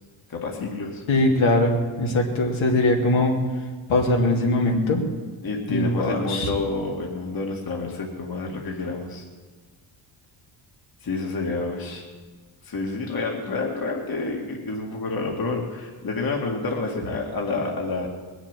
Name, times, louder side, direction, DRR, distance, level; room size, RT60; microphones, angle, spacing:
voice 1, 0.3-1.0 5.4-9.2 11.0-12.1 12.6-18.1, left 3 dB, 45° left, 0 dB, 2.2 m, -29 dB
voice 2, 1.1-3.3 3.9-5.0 5.7-6.5, left 2 dB, 75° left, 0 dB, 2.9 m, -21 dB
20.0 x 7.3 x 9.1 m, 1.4 s
cardioid pair, 110°, 48 cm